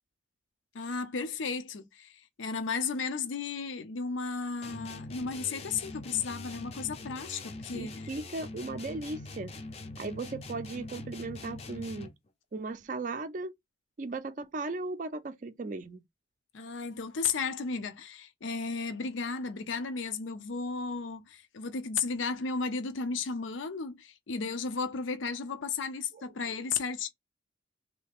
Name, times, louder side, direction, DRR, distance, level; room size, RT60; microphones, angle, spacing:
voice 1, 0.7-8.2 16.5-27.1, left 5 dB, 85° left, 0.5 m, -34 dB
sound 1, 4.6-12.3, left 2 dB, 35° left, 0.4 m, -43 dB
voice 2, 7.7-9.6 10.0-12.1 12.5-13.5 14.0-16.0 26.1-26.2, right 3 dB, 45° right, 0.4 m, -37 dB
3.2 x 2.7 x 3.4 m
head